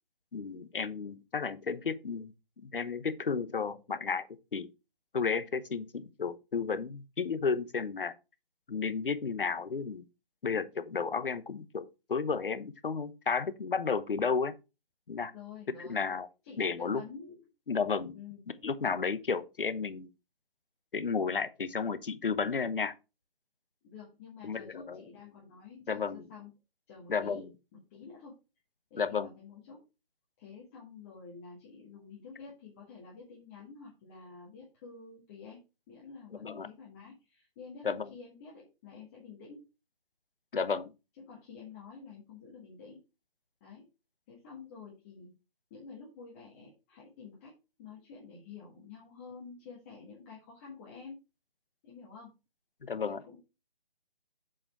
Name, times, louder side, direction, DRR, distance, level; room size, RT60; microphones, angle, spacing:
voice 1, 0.3-4.3 4.5-4.7 5.1-8.1 8.7-10.1 10.4-14.5 15.1-15.3 15.7-16.3 16.6-17.0 17.7-18.1 18.5-20.1 20.9-22.9 24.4-25.0 25.9-26.2 27.1-27.5 29.0-29.3 36.3-36.7 37.8-38.1 40.5-40.9 52.8-53.2, left 5 dB, 65° left, 1.0 m, -32 dB
voice 2, 15.3-16.0 16.4-17.4 18.1-18.4 23.8-26.5 26.9-27.4 27.7-28.3 28.9-29.8 30.4-39.6 41.2-43.0 43.6-43.9 44.3-45.3 45.7-47.5 47.8-51.2 51.8-52.3 53.0-53.4, left 5 dB, 15° left, 1.8 m, -49 dB
7.5 x 4.9 x 4.7 m
figure-of-eight pair, 160°, 29 cm